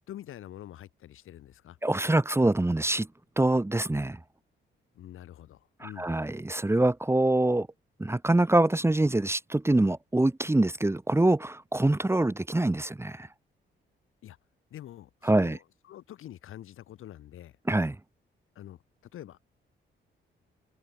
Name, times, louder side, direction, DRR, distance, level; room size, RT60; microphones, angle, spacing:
voice 1, 0.1-1.8 4.9-6.1 14.2-14.4 14.7-17.6 18.6-18.8 19.1-19.5, left 12 dB, 85° left, 7.2 m, -46 dB
voice 2, 1.8-3.1 3.4-4.2 5.8-7.7 8.0-13.3 15.2-15.6 17.7-18.0, right 2 dB, 10° right, 1.3 m, -25 dB
open air
cardioid pair, 80°, 21 cm